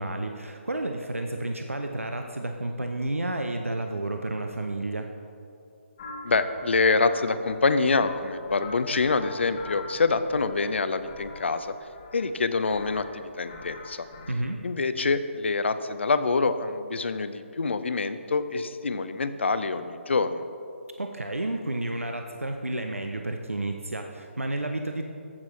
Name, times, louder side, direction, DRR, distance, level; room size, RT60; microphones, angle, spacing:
voice 1, 0.0-5.1 14.3-14.6 21.0-25.0, right 2 dB, 85° right, 4 dB, 0.6 m, -31 dB
sound 1, 6.0-14.3, left 3 dB, 35° left, 1.0 m, -43 dB
voice 2, 6.2-11.8 12.1-14.1 14.6-20.4, left 4 dB, 60° left, 12 dB, 0.5 m, -26 dB
14.5 x 6.1 x 3.1 m, 2.5 s
figure-of-eight pair, 145°, 7 cm